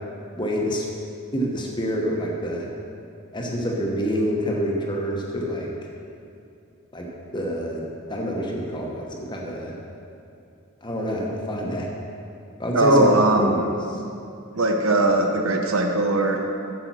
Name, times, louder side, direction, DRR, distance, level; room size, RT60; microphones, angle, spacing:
voice 1, 0.3-0.9 1.3-2.7 3.3-5.7 6.9-7.1 7.3-9.7 10.8-11.9 12.6-14.0, equal, 20° left, -1 dB, 1.1 m, -26 dB
voice 2, 12.7-13.6 14.5-16.4, right 2 dB, 70° right, 3 dB, 0.9 m, -20 dB
8.1 x 6.8 x 6.2 m, 2.6 s
head